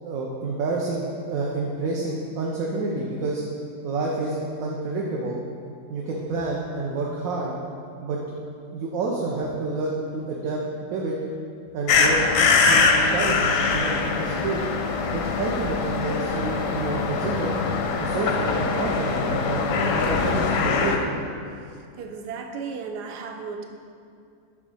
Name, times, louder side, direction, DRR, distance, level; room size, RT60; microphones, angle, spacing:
voice 1, 0.0-3.4 3.8-5.4 5.9-7.5 8.0-8.2 8.7-10.6 10.9-11.1 11.7-12.2 12.6-14.6 15.1-17.6 18.0-21.0, right 3 dB, 65° right, -2 dB, 1.0 m, -28 dB
sound 1, 11.9-21.0, left 4 dB, 70° left, 0.8 m, -23 dB
voice 2, 22.0-23.7, right 5 dB, 90° right, 5 dB, 1.2 m, -34 dB
7.2 x 3.6 x 5.4 m, 2.3 s
omnidirectional pair, 1.7 m